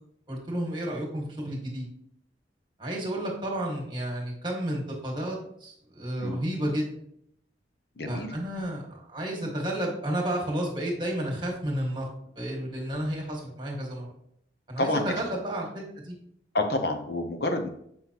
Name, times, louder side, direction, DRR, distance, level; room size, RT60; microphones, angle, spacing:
voice 1, 0.3-1.9 2.8-6.9 8.1-12.1 12.3-14.1 14.7-15.7 15.9-16.1, right 1 dB, 25° right, 0 dB, 1.7 m, -31 dB
voice 2, 8.0-8.3 14.8-15.1 16.5-17.7, left 2 dB, 60° left, 5 dB, 0.7 m, -28 dB
7.5 x 5.3 x 2.9 m, 0.71 s
head